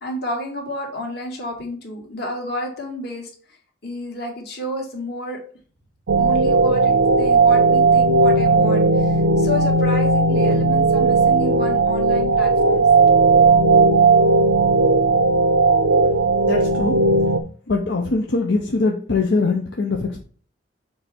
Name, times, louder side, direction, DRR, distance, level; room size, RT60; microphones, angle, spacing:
voice 1, 0.0-3.3 3.8-5.4 6.1-12.8 13.3-13.4, left 1 dB, 60° left, -1 dB, 2.2 m, -30 dB
sound 1, 6.1-17.4, right 3 dB, 90° right, 0.6 m, -16 dB
voice 2, 16.4-17.0 17.7-20.2, left 3 dB, 80° left, 1 dB, 0.8 m, -22 dB
6.7 x 3.3 x 4.4 m, 0.43 s
head